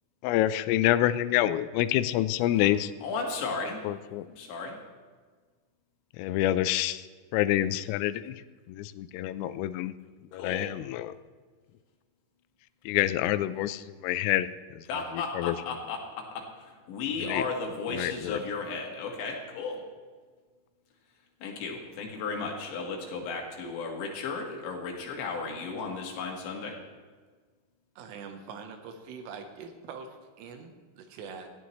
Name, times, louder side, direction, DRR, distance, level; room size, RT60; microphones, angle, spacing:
voice 1, 0.2-2.9 3.8-4.3 6.2-7.1 7.3-8.4 8.7-9.9 10.3-11.1 12.9-14.9 15.4-15.5 17.2-17.4 17.9-18.4, left 13 dB, 85° left, 12 dB, 3.2 m, -27 dB
voice 2, 3.0-3.9 4.3-4.8 10.3-10.7 14.9-19.8 21.4-26.8, left 4 dB, 65° left, 0 dB, 4.0 m, -34 dB
voice 3, 28.0-31.5, right 5 dB, 80° right, 6 dB, 3.7 m, -43 dB
18.0 x 14.0 x 3.2 m, 1.5 s
omnidirectional pair, 5.8 m